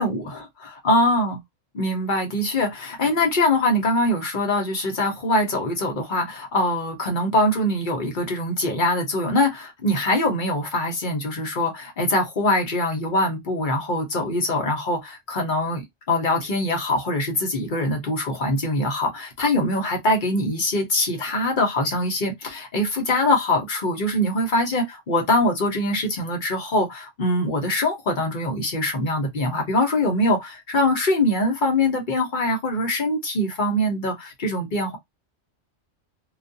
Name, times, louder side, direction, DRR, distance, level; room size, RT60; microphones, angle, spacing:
voice 1, 0.0-0.4 0.8-1.4 1.7-35.0, left 1 dB, 45° left, 0.8 m, -23 dB
2.3 x 2.2 x 2.6 m
omnidirectional pair, 1.2 m